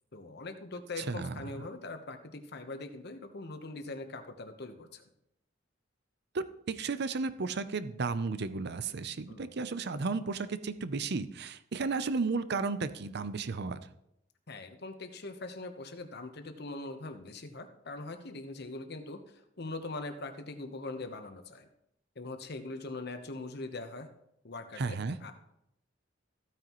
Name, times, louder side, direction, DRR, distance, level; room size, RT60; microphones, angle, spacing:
voice 1, 0.1-5.0 9.3-9.5 14.5-21.7 22.1-24.1 24.4-25.3, left 2 dB, 60° left, 7 dB, 1.1 m, -42 dB
voice 2, 1.0-1.5 6.3-13.8 24.8-25.2, right 4 dB, 60° right, 13 dB, 0.6 m, -33 dB
14.5 x 9.2 x 3.1 m, 0.81 s
head